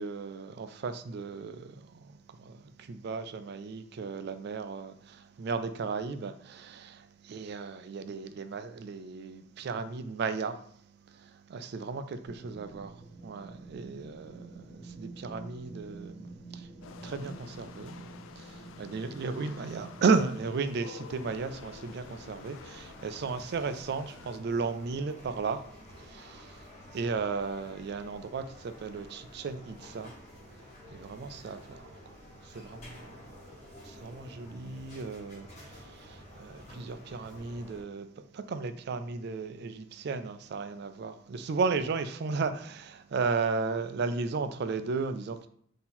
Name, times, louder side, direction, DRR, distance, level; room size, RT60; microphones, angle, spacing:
voice 1, 0.0-10.6 11.1-12.9 13.2-16.7 17.0-18.1 18.4-25.6 26.0-30.1 30.9-33.6 33.8-38.1 38.3-45.5, right 4 dB, 60° right, 0.4 m, -35 dB
sound 1, 12.3-20.0, right 3 dB, 15° left, 1.5 m, -48 dB
train station hall - Bahnhofshalle, 16.8-24.4, left 6 dB, 90° left, 0.3 m, -50 dB
sound 2, 21.0-37.8, left 1 dB, 35° left, 1.4 m, -51 dB
3.8 x 2.8 x 4.1 m
head